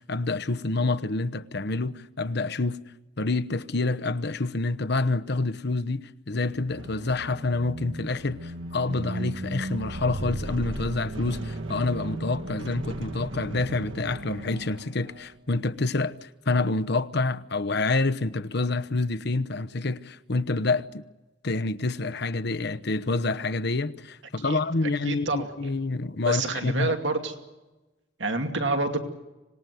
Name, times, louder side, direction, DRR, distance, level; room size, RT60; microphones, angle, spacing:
voice 1, 0.0-2.8 3.2-21.0 21.4-27.0, left 3 dB, 60° left, 1.0 m, -27 dB
sound 1, 6.5-15.3, right 1 dB, 85° right, 1.8 m, -36 dB
voice 2, 24.4-25.7 26.2-27.3 28.2-29.0, right 3 dB, 70° right, 2.6 m, -28 dB
26.0 x 19.5 x 9.3 m
head